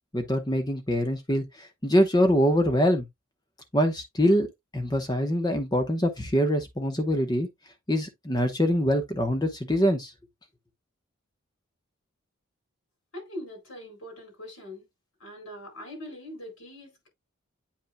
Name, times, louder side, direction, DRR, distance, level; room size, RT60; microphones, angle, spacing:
voice 1, 0.1-3.1 3.7-4.5 4.7-7.5 7.9-10.1, equal, 20° left, 1.0 m, -24 dB
voice 2, 13.1-14.9 15.2-17.1, left 1 dB, 75° left, 4.5 m, -42 dB
8.6 x 5.4 x 2.2 m
head